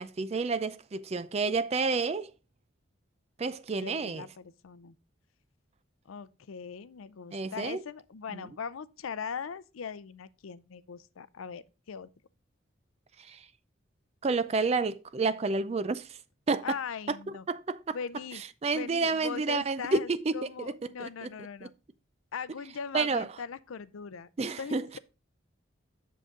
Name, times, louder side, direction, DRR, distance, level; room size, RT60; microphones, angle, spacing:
voice 1, 0.0-2.3 3.4-4.3 7.3-7.8 8.3-8.5 13.2-13.5 14.2-16.2 16.5-16.8 17.1-17.2 17.5-18.0 18.3-21.3 21.6-21.7 22.9-23.3 24.4-24.9, right 4 dB, 30° right, 0.4 m, -30 dB
voice 2, 3.8-5.0 6.1-12.1 16.6-17.5 17.9-18.4 18.7-21.7 22.3-25.0, left 6 dB, 90° left, 0.5 m, -40 dB
7.7 x 6.6 x 3.6 m
head